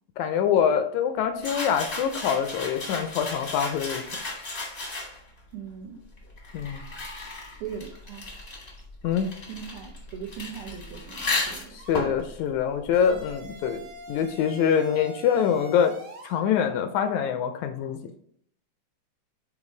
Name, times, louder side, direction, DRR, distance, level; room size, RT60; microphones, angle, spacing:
voice 1, 0.2-4.0 6.5-6.9 9.0-9.3 11.7-13.8 14.1-15.9 16.2-18.1, left 8 dB, 80° left, 8 dB, 1.7 m, -25 dB
sound 1, 1.4-5.4 6.2-13.6, left 2 dB, 45° left, 0.7 m, -35 dB
voice 2, 5.5-6.0 7.6-8.3 9.5-11.8, right 8 dB, 80° right, -1 dB, 1.2 m, -39 dB
sound 2, 11.8-12.1 12.9-16.4, right 4 dB, 55° right, 1.4 m, -44 dB
7.2 x 4.2 x 3.2 m, 0.65 s
omnidirectional pair, 3.6 m